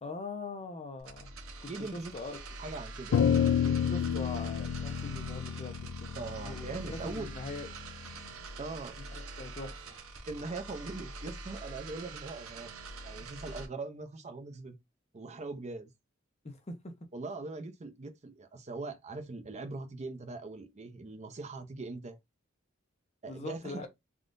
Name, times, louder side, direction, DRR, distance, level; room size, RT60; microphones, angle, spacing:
voice 1, 0.0-1.3 1.6-2.4 3.6-5.9 6.4-7.7 9.1-10.0 16.4-16.9 23.2-23.9, left 3 dB, 30° left, 0.6 m, -42 dB
sound 1, 1.0-13.7, right 3 dB, 80° right, 0.8 m, -45 dB
voice 2, 1.7-2.1 2.6-3.6 6.2-7.3 8.6-8.9 10.3-14.8 15.1-15.9 17.1-22.2 23.2-23.9, right 3 dB, 35° right, 0.5 m, -41 dB
sound 2, 3.1-7.6, left 8 dB, 85° left, 0.3 m, -30 dB
3.6 x 2.4 x 2.5 m
head